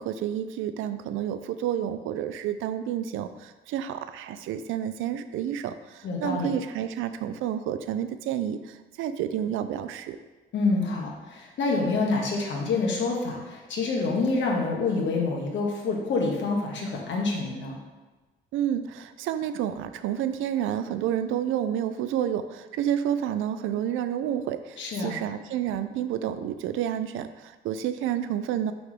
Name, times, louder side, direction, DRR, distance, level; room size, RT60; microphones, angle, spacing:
voice 1, 0.0-10.2 18.5-28.7, right 10 dB, 90° right, 11 dB, 0.5 m, -30 dB
voice 2, 6.0-6.5 10.5-17.8 24.8-25.2, left 3 dB, 70° left, -1 dB, 1.6 m, -27 dB
5.9 x 4.0 x 6.2 m, 1.2 s
cardioid pair, 90°, 20 cm